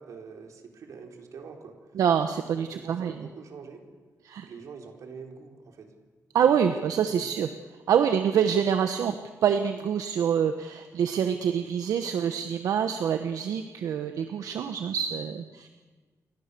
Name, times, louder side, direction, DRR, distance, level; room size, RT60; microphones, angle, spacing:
voice 1, 0.0-1.8 2.5-3.8 4.4-5.9 6.8-7.3, right 5 dB, 70° right, 3 dB, 4.0 m, -45 dB
voice 2, 2.0-3.1 4.3-4.5 6.3-7.5 7.9-9.1 9.4-15.7, right 8 dB, 90° right, 8 dB, 1.1 m, -26 dB
29.5 x 23.0 x 6.9 m, 1.4 s
wide cardioid pair, 155°, 6 cm